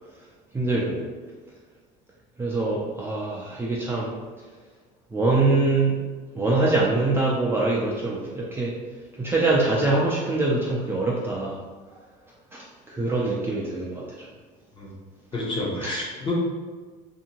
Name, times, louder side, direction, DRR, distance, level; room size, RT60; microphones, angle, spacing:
voice 1, 0.5-1.1 2.4-4.1 5.1-6.0 6.3-8.7 9.2-11.6 12.5-14.0 15.8-15.9, right 2 dB, 15° right, -5 dB, 0.3 m, -24 dB
voice 2, 15.3-16.3, left 2 dB, 30° left, -3 dB, 0.7 m, -29 dB
2.7 x 2.5 x 2.8 m, 1.4 s
cardioid pair, 135°, 17 cm